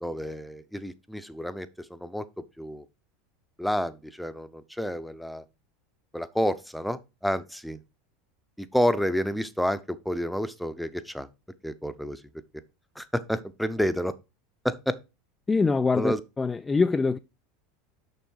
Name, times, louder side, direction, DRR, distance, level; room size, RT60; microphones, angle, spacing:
voice 1, 0.0-2.3 2.6-2.9 3.6-5.4 6.1-7.8 8.6-11.3 11.6-12.2 13.0-14.1 14.6-15.0 15.9-16.2, equal, ahead, 0.8 m, -29 dB
voice 2, 15.5-17.2, left 4 dB, 15° left, 0.4 m, -24 dB
6.7 x 6.0 x 4.6 m
figure-of-eight pair, 80°, 0 cm